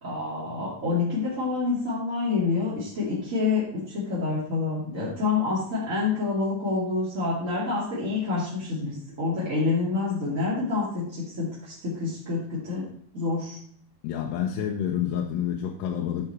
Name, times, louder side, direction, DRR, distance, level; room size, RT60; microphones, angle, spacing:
voice 1, 0.0-12.9 13.1-13.6, left 4 dB, 25° right, -9 dB, 1.8 m, -27 dB
voice 2, 14.0-16.3, left 9 dB, 85° left, 2 dB, 2.8 m, -28 dB
11.0 x 4.9 x 4.3 m, 0.62 s
omnidirectional pair, 4.8 m